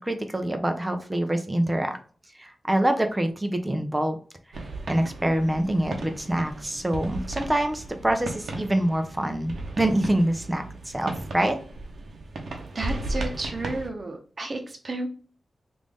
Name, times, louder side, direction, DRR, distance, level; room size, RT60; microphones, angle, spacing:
voice 1, 0.0-2.0 2.4-4.2 4.5-4.6 4.9-11.6, right 1 dB, 15° right, 6 dB, 0.6 m, -25 dB
sound 1, 4.5-13.9, right 2 dB, 80° right, 0.7 m, -36 dB
voice 2, 12.7-15.1, right 2 dB, 50° right, 3 dB, 0.9 m, -32 dB
3.3 x 2.6 x 3.5 m, 0.41 s
cardioid pair, 70°, 0 cm